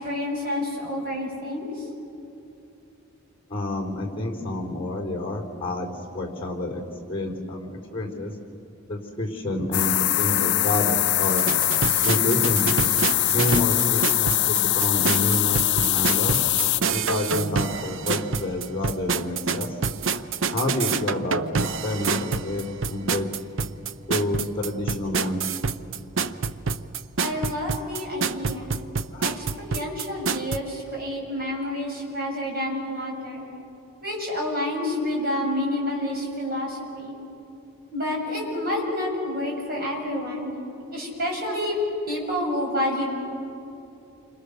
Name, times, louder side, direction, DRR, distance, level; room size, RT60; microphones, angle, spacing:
voice 1, 0.0-1.7 27.2-28.7 29.2-33.5 34.0-37.1 37.9-40.5 40.9-41.8 42.1-43.0, left 1 dB, 45° right, -2 dB, 7.3 m, -29 dB
voice 2, 3.5-6.8 7.1-8.3 8.9-11.4 12.0-12.7 13.3-16.4 16.9-19.8 20.5-23.3 24.1-25.5 29.1-29.3, left 1 dB, 25° left, 1 dB, 3.8 m, -28 dB
sound 1, 9.7-16.8, left 15 dB, 55° left, 0.5 m, -22 dB
sound 2, 11.3-30.6, right 5 dB, 65° right, 0.7 m, -27 dB
29.0 x 26.0 x 6.7 m, 2.8 s
head